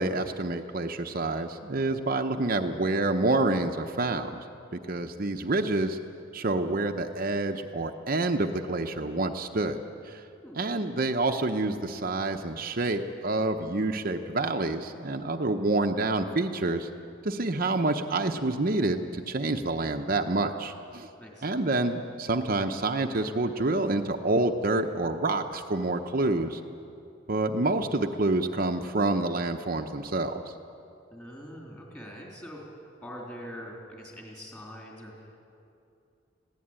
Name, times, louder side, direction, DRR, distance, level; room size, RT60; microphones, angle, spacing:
voice 1, 0.0-4.3 4.7-6.0 6.3-9.8 10.0-10.2 10.5-16.9 17.2-21.1 21.4-26.6 27.3-30.5, right 2 dB, 50° right, 5 dB, 0.8 m, -28 dB
voice 2, 21.2-21.7 31.1-35.4, equal, 15° left, -2 dB, 3.4 m, -44 dB
21.0 x 16.5 x 8.9 m, 2.7 s
head